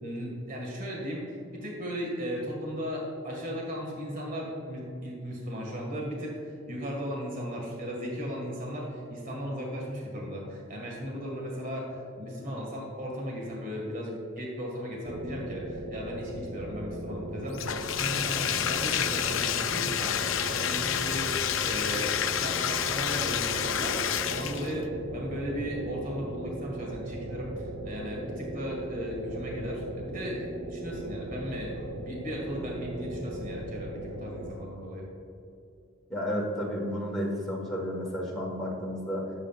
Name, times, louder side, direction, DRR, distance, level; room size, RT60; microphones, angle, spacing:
voice 1, 0.0-17.6 18.0-20.1 20.5-35.0, equal, 40° right, -2 dB, 1.9 m, -36 dB
sound 1, 15.0-34.5, right 1 dB, 80° right, 1.0 m, -38 dB
Bathtub (filling or washing), 17.5-24.8, left 9 dB, 75° left, 0.5 m, -29 dB
voice 2, 36.1-39.3, equal, ahead, -5 dB, 1.6 m, -32 dB
16.0 x 7.6 x 2.5 m, 2.6 s
head